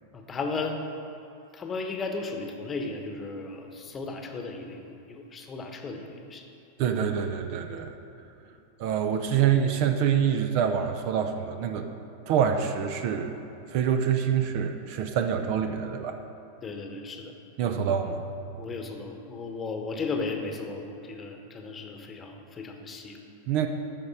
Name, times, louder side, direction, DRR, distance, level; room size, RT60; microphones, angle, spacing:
voice 1, 0.1-0.8 1.5-6.4 16.6-17.4 18.6-23.2, left 3 dB, 20° left, 4 dB, 1.1 m, -35 dB
voice 2, 6.8-7.9 8.8-11.8 12.3-13.4 13.7-16.2 17.6-18.2 23.5-23.7, right 8 dB, 45° right, 6 dB, 0.6 m, -26 dB
14.0 x 5.3 x 4.9 m, 2.8 s
figure-of-eight pair, 90°, 0 cm